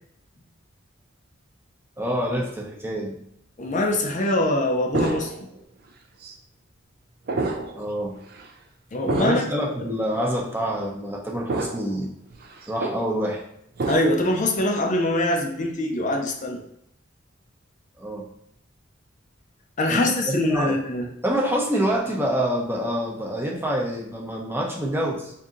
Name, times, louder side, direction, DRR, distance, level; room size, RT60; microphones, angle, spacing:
voice 1, 2.0-3.2 7.8-8.2 9.2-12.1 12.7-13.4 18.0-18.2 19.9-20.8 21.2-25.3, equal, 10° right, -1 dB, 0.7 m, -26 dB
voice 2, 3.6-5.5 8.9-9.5 9.8-9.9 13.9-16.6 19.8-21.1, left 1 dB, 40° left, 2 dB, 0.5 m, -23 dB
sound 1, 4.9-5.6 6.2-6.3 7.3-7.8 8.2-8.5 9.1-9.5 10.2-10.3 11.5-12.0 12.3-13.0 13.8-14.3, right 2 dB, 50° right, 0.5 m, -28 dB
3.6 x 2.7 x 3.7 m, 0.74 s
head